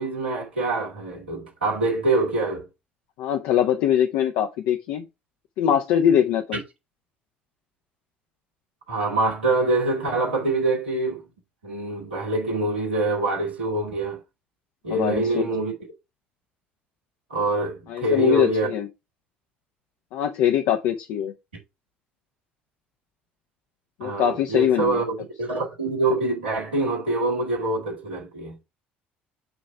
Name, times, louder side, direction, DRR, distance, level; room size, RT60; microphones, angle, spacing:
voice 1, 0.0-2.7 8.9-11.2 11.6-14.2 14.8-15.7 17.3-18.7 24.0-28.6, right 2 dB, 80° right, 2.0 m, -25 dB
voice 2, 3.2-5.0 5.6-6.6 14.9-15.4 17.9-18.9 20.1-21.3 24.0-25.0, left 9 dB, 60° left, 0.7 m, -22 dB
8.1 x 3.2 x 4.6 m
figure-of-eight pair, 55°, 5 cm